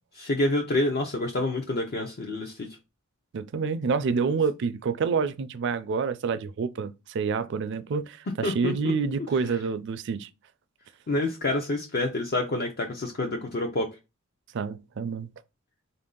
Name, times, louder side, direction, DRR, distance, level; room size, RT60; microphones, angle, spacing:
voice 1, 0.1-2.7 8.4-8.7 11.1-13.9, left 2 dB, 50° left, 0.5 m, -27 dB
voice 2, 3.3-10.3 14.5-15.3, right 5 dB, 60° right, 0.4 m, -28 dB
3.9 x 2.6 x 3.7 m
head